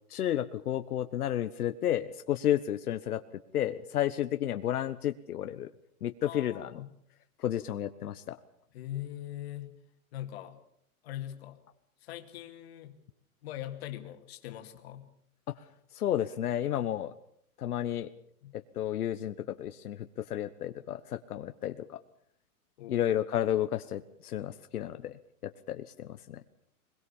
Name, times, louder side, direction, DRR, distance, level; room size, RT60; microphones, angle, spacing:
voice 1, 0.1-3.2 3.5-5.7 6.0-6.7 7.4-8.4 15.9-17.1 17.6-18.1 18.7-22.0 22.9-25.2 25.4-26.4, left 11 dB, 80° left, 9 dB, 1.3 m, -32 dB
voice 2, 6.2-6.9 8.7-9.8 10.1-10.6 11.0-11.6 12.0-13.0 13.4-15.1 18.4-18.5 22.8-23.1, left 13 dB, 45° left, 6 dB, 2.5 m, -41 dB
22.5 x 21.5 x 7.2 m, 0.66 s
hypercardioid pair, 165°, 44 cm